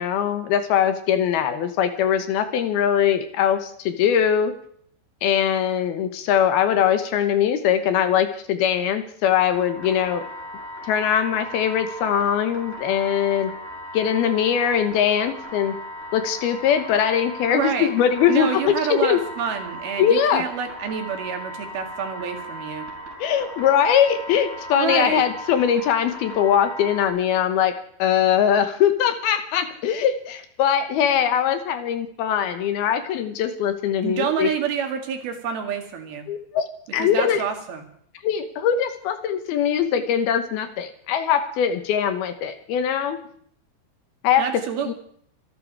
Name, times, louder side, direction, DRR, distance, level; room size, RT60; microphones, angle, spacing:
voice 1, 0.0-4.5 5.2-10.3 10.9-13.5 13.9-15.7 16.1-19.2 20.0-20.4 23.2-27.7 28.0-34.5 36.3-37.4 38.2-43.2 44.2-44.5 44.9-45.0, left 9 dB, 70° left, 9 dB, 2.9 m, -21 dB
sound 1, 9.5-27.1, equal, 20° right, 6.9 m, -37 dB
voice 2, 17.5-17.9 18.3-22.9 24.7-25.2 34.0-36.2 37.0-37.8 44.4-44.9, right 7 dB, 65° right, 5 dB, 3.9 m, -28 dB
26.0 x 11.5 x 4.7 m, 0.63 s
omnidirectional pair, 4.8 m